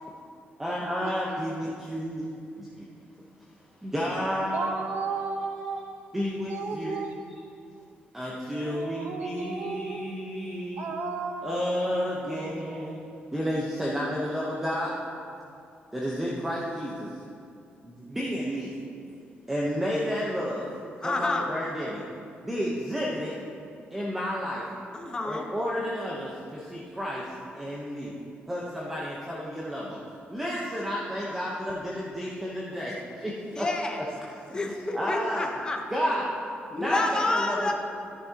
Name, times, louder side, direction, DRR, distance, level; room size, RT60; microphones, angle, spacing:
voice 1, 0.6-2.9 3.8-4.7 6.1-7.1 8.1-10.9 11.4-13.0 13.3-15.0 15.9-17.2 17.8-18.8 19.5-20.7 21.0-22.0 22.4-23.4 23.9-24.7 25.2-28.1 28.5-30.0 30.3-33.7 34.5-35.5 35.9-36.3 36.7-37.7, equal, 10° right, -5 dB, 1.0 m, -31 dB
voice 2, 4.5-5.9 6.5-7.1 8.6-10.0 10.8-11.8 12.2-13.2, right 4 dB, 60° right, 4 dB, 1.0 m, -34 dB
voice 3, 21.0-21.5 24.9-25.5 33.5-34.0 34.5-35.8 36.7-37.7, left 2 dB, 20° left, 2 dB, 0.9 m, -29 dB
13.5 x 10.5 x 2.9 m, 2.5 s
cardioid pair, 155°, 4 cm